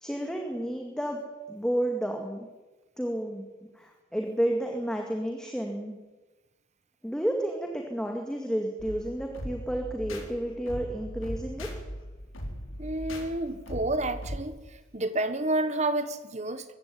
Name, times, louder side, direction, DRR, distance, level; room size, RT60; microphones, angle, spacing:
voice 1, 0.0-1.2 1.5-2.5 3.0-3.5 3.8-6.0 7.0-11.7, right 1 dB, 5° left, 1 dB, 2.2 m, -31 dB
sound 1, 8.8-14.5, equal, 85° left, 4.4 m, -39 dB
voice 2, 12.8-14.6 14.9-16.6, right 2 dB, 35° right, 10 dB, 1.6 m, -29 dB
22.0 x 16.0 x 9.4 m, 1.2 s
head